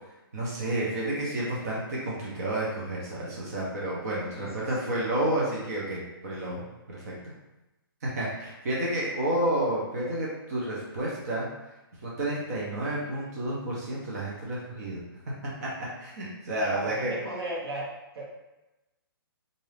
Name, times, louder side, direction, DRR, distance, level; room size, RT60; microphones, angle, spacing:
voice 1, 0.3-7.3 8.0-11.5 12.0-15.0 15.6-15.7 16.0-17.1, right 1 dB, 40° right, -5 dB, 0.7 m, -30 dB
voice 2, 4.3-5.0 16.7-17.9 18.1-18.2, right 1 dB, 85° right, -4 dB, 1.1 m, -36 dB
2.6 x 2.4 x 3.2 m, 0.99 s
hypercardioid pair, 170°, 12 cm